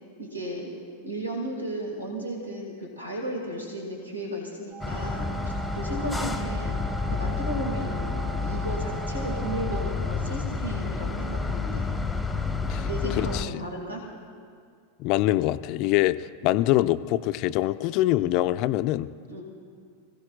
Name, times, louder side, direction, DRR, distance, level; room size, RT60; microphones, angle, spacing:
voice 1, 0.2-0.7 1.0-6.8 7.1-11.9 12.6-14.0 19.3-19.4, right 1 dB, 80° right, 0 dB, 2.1 m, -34 dB
sound 1, 4.7-9.9, right 7 dB, 35° right, 4.3 m, -41 dB
sound 2, 4.8-13.5, left 4 dB, ahead, 0.8 m, -30 dB
voice 2, 13.2-13.6 15.0-19.1, left 15 dB, 40° left, 14 dB, 0.4 m, -24 dB
25.0 x 16.0 x 2.4 m, 2.2 s
figure-of-eight pair, 90°, 0 cm